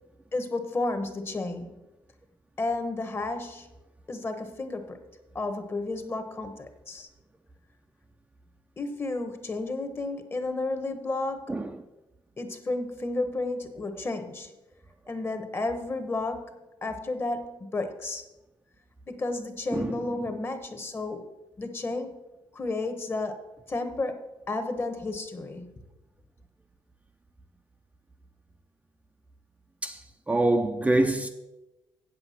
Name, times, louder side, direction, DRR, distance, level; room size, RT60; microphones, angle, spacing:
voice 1, 0.3-1.7 2.6-3.7 4.1-5.0 5.3-7.1 8.8-11.5 12.4-14.5 15.1-18.2 19.1-21.2 21.6-22.1 22.5-23.4 23.7-24.2 24.5-25.7, left 2 dB, 25° left, 1.1 m, -32 dB
voice 2, 30.3-31.3, right 2 dB, 15° right, 0.5 m, -24 dB
8.0 x 7.9 x 5.7 m
cardioid pair, 110°, 9 cm